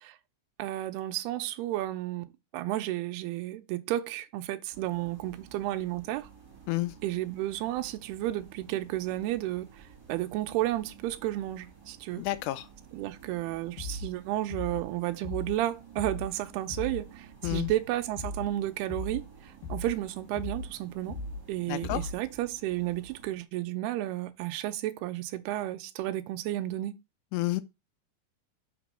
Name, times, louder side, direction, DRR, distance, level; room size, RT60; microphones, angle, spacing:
voice 1, 0.6-6.3 7.0-9.7 10.1-12.2 12.9-21.2 21.5-27.0, right 15 dB, 80° right, 2.6 m, -32 dB
sound 1, 4.7-23.3, right 6 dB, 25° right, 3.0 m, -53 dB
voice 2, 12.2-12.7 17.4-17.7 21.7-22.0 27.3-27.6, left 18 dB, 85° left, 2.7 m, -30 dB
sound 2, 13.8-14.2 14.5-14.9 15.2-15.6 16.0-16.3 16.7-17.1 17.4-17.8 18.2-18.5 18.9-19.3 19.6-20.0 20.4-20.7 21.1-21.5 21.8-22.2, left 2 dB, 65° left, 2.7 m, -37 dB
6.1 x 4.2 x 6.1 m
omnidirectional pair, 4.9 m